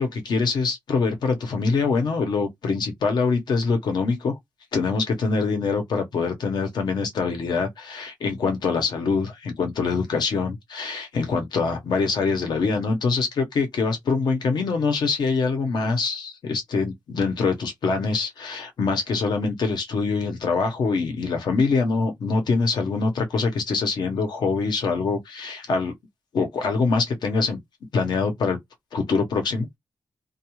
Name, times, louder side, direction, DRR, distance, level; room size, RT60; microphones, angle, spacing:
voice 1, 0.0-4.4 4.7-25.9 26.3-27.6 27.9-28.6 28.9-29.7, left 4 dB, 75° left, 0.8 m, -24 dB
2.3 x 2.3 x 3.0 m
wide cardioid pair, 115°, 7 cm